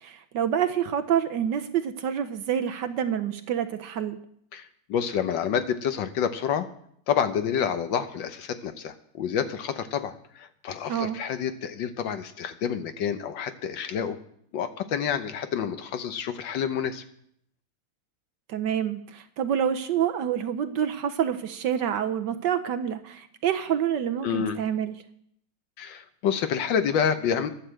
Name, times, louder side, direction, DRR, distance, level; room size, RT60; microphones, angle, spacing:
voice 1, 0.0-4.2 10.9-11.2 18.5-24.9, right 9 dB, 65° right, 9 dB, 1.2 m, -27 dB
voice 2, 4.5-6.7 7.1-14.2 14.5-17.0 24.2-24.6 25.8-27.5, left 8 dB, 70° left, 9 dB, 1.5 m, -28 dB
11.5 x 9.0 x 7.6 m, 0.69 s
omnidirectional pair, 2.2 m